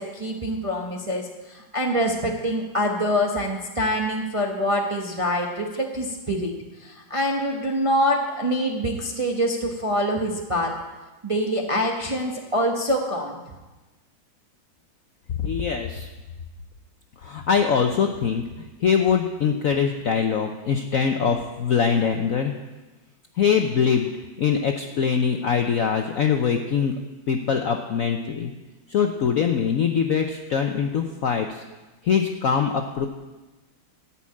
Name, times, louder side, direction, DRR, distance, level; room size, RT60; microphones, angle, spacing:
voice 1, 0.0-6.5 6.8-10.7 11.2-13.4, equal, 25° right, 0 dB, 0.7 m, -25 dB
voice 2, 15.4-16.1 17.2-22.5 23.4-24.1 24.4-26.9 27.3-28.5 28.9-31.6 32.0-33.1, left 6 dB, 65° left, 4 dB, 0.8 m, -23 dB
13.5 x 5.8 x 8.5 m, 1.2 s
omnidirectional pair, 2.2 m